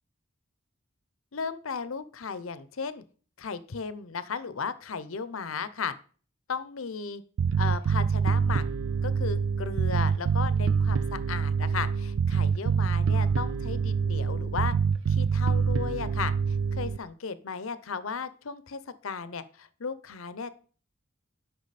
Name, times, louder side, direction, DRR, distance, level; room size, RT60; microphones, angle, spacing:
voice 1, 1.3-3.0 3.4-5.9 6.5-7.2 7.6-8.6 9.0-14.7 15.1-20.5, left 5 dB, 80° left, 14 dB, 0.7 m, -35 dB
Bass guitar, 7.4-17.0, right 6 dB, 65° right, 0.4 m, -26 dB
11.5 x 5.9 x 4.1 m, 0.41 s
head